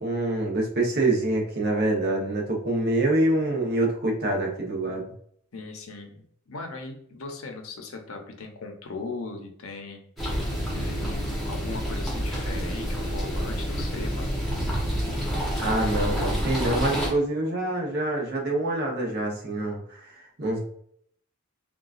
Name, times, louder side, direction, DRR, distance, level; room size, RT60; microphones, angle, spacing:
voice 1, 0.0-5.0 15.6-20.6, right 2 dB, 50° right, 0 dB, 0.8 m, -26 dB
voice 2, 5.5-10.3 10.7-14.3, left 3 dB, 70° left, 3 dB, 0.7 m, -39 dB
sound 1, 10.2-17.1, equal, ahead, 0.9 m, -28 dB
3.8 x 2.3 x 2.4 m, 0.65 s
head